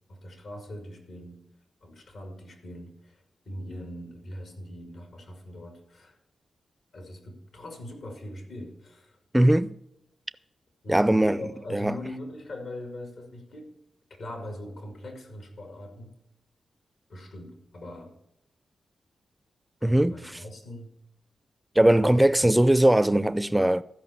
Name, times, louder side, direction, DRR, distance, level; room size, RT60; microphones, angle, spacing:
voice 1, 0.1-1.4 1.8-6.2 6.9-9.2 10.8-13.7 14.1-16.1 17.1-18.2 19.8-20.9 21.9-22.5, left 1 dB, 70° left, 2.4 m, -41 dB
voice 2, 9.3-9.8 10.9-11.4 11.7-12.0 19.8-20.2 21.8-23.8, right 1 dB, 10° right, 0.6 m, -20 dB
14.5 x 5.3 x 7.0 m
supercardioid pair, 45°, 0 cm